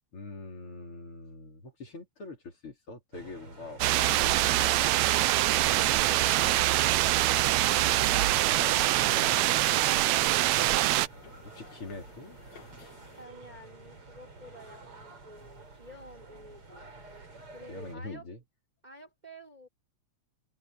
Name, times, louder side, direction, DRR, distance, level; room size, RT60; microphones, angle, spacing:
voice 1, 0.1-3.8 4.1-5.1 8.5-10.8 11.1-12.4 17.7-18.4, left 3 dB, 45° left, 4.6 m, -44 dB
sound 1, 3.1-18.0, right 3 dB, 50° right, 5.7 m, -50 dB
sound 2, 3.8-11.1, right 15 dB, 75° right, 1.9 m, -24 dB
sound 3, 6.3-13.3, left 6 dB, 70° left, 3.8 m, -52 dB
voice 2, 13.2-17.0 17.5-18.3 18.8-19.7, equal, 15° right, 3.8 m, -50 dB
omnidirectional pair, 3.3 m